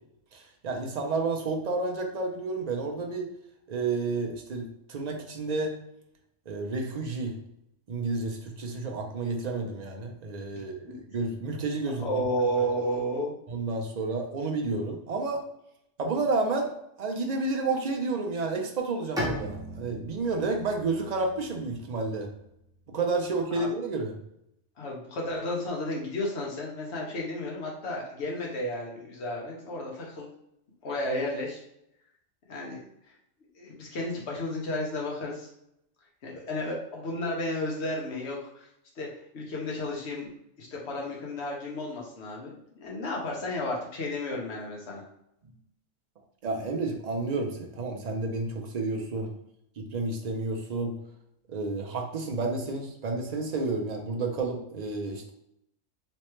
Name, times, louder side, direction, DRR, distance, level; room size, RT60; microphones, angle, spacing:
voice 1, 0.3-3.3 3.7-5.7 6.5-7.3 7.9-12.2 13.5-15.4 16.0-16.7 17.0-22.3 22.9-24.1 46.4-49.3 49.8-50.9 51.5-55.3, right 3 dB, 60° right, 2 dB, 0.4 m, -30 dB
voice 2, 12.0-13.3 23.5-23.7 24.8-30.3 30.8-31.6 32.5-32.8 33.6-35.5 36.2-38.7 39.0-39.1 39.3-40.3 40.6-45.0, left 1 dB, 60° left, -2 dB, 1.2 m, -32 dB
Bowed string instrument, 19.2-22.8, equal, 5° right, 0.6 m, -38 dB
3.2 x 3.1 x 3.0 m, 0.78 s
omnidirectional pair, 1.4 m